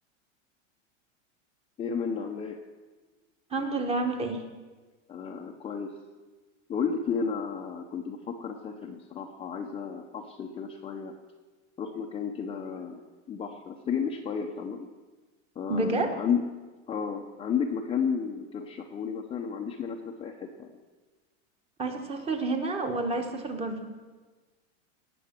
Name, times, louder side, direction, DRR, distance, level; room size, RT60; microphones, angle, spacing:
voice 1, 1.8-2.6 5.1-6.0 6.7-11.2 11.8-13.0 13.3-14.9 15.6-16.4 16.9-20.7, left 6 dB, 15° left, 1 dB, 0.7 m, -32 dB
voice 2, 3.5-4.4 15.7-16.1 21.8-23.9, right 2 dB, 15° right, 6 dB, 1.3 m, -29 dB
18.0 x 6.9 x 7.5 m, 1.3 s
supercardioid pair, 150°, 38 cm